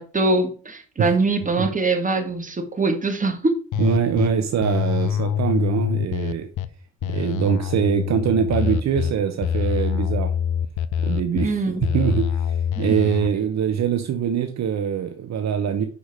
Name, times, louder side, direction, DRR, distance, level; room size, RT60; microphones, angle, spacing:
voice 1, 0.0-3.5 11.4-11.8 12.8-12.9, right 3 dB, 25° right, 6 dB, 1.8 m, -23 dB
sound 1, 3.7-4.3 4.6-6.7 7.0-9.1 9.4-11.5 11.8-13.3, left 9 dB, 80° left, 0.7 m, -25 dB
voice 2, 3.8-6.5 7.0-10.3 11.0-11.5 11.9-15.9, right 7 dB, 60° right, 7 dB, 1.0 m, -23 dB
6.7 x 5.0 x 5.0 m, 0.39 s
cardioid pair, 90°, 30 cm